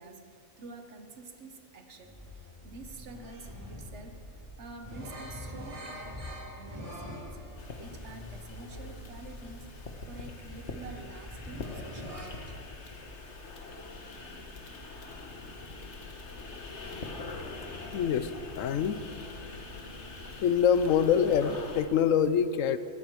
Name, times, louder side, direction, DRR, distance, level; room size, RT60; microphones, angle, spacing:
voice 1, 0.0-7.4 7.8-12.6, right 3 dB, 60° right, 6 dB, 1.5 m, -48 dB
sound 1, 2.0-12.2, equal, 25° right, 3.9 m, -44 dB
sound 2, 7.6-21.8, left 3 dB, 60° left, 1.7 m, -43 dB
voice 2, 17.9-18.3 18.6-19.0 20.4-22.8, left 8 dB, 80° left, 13 dB, 1.1 m, -25 dB
20.5 x 13.5 x 4.7 m, 2.5 s
omnidirectional pair, 1.4 m